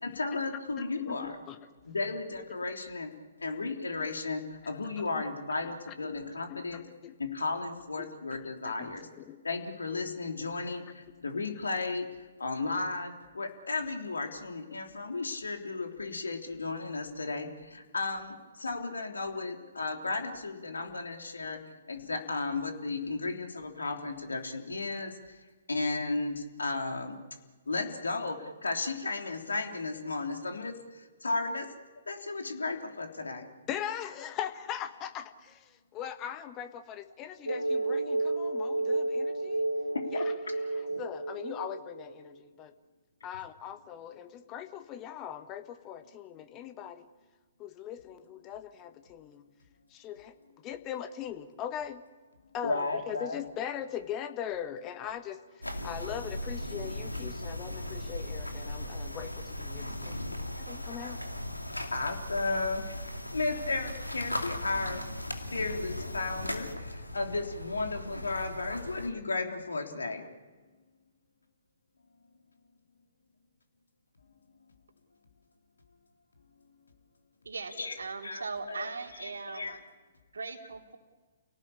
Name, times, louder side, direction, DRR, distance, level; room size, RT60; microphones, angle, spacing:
voice 1, 0.0-1.4 1.8-3.1 3.4-6.8 7.2-9.1 9.4-12.1 12.4-21.6 21.9-25.1 25.7-27.2 27.7-30.7 31.2-31.7 32.1-33.5 40.1-40.2 40.9-41.0 52.6-53.4 61.9-62.8 63.3-65.0 65.5-70.2 77.8-78.0 78.2-78.9 79.2-79.8, left 3 dB, 70° left, 4 dB, 3.3 m, -34 dB
voice 2, 0.8-1.6 5.1-5.2 5.6-5.7 6.5-7.1 8.0-8.1 8.6-9.4 33.7-39.7 40.1-40.2 40.7-42.7 43.2-47.1 47.6-49.4 49.9-50.3 50.6-52.0 52.5-55.4 55.8-60.2 60.5-61.2, left 10 dB, 25° left, 10 dB, 1.5 m, -40 dB
sound 1, 37.5-42.1, right 2 dB, 85° right, 1.5 m, -31 dB
sound 2, 55.6-69.1, left 1 dB, 85° left, 2.5 m, -38 dB
voice 3, 77.4-79.8 80.3-81.0, right 4 dB, 65° right, 3 dB, 3.0 m, -39 dB
29.5 x 18.5 x 8.6 m, 1.4 s
figure-of-eight pair, 125°, 0 cm